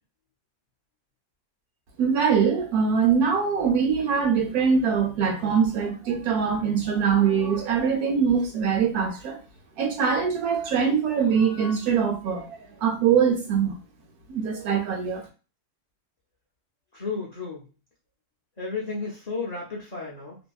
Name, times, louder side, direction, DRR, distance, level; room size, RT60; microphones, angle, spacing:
voice 1, 2.0-9.4 9.8-13.7 14.3-15.3, right 6 dB, 70° right, 1.1 m, -23 dB
voice 2, 16.9-17.7 18.6-20.4, left 4 dB, 75° left, 0.3 m, -33 dB
2.8 x 2.6 x 2.3 m
omnidirectional pair, 1.7 m